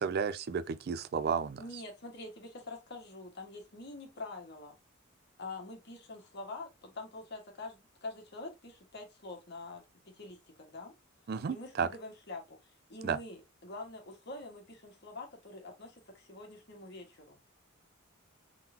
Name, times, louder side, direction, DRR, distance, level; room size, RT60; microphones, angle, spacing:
voice 1, 0.0-1.6 11.3-11.9 13.0-13.2, right 6 dB, 50° right, 0.4 m, -32 dB
voice 2, 1.6-4.8 5.4-10.9 11.5-17.4, left 2 dB, 55° left, 1.6 m, -46 dB
3.8 x 3.7 x 2.7 m
head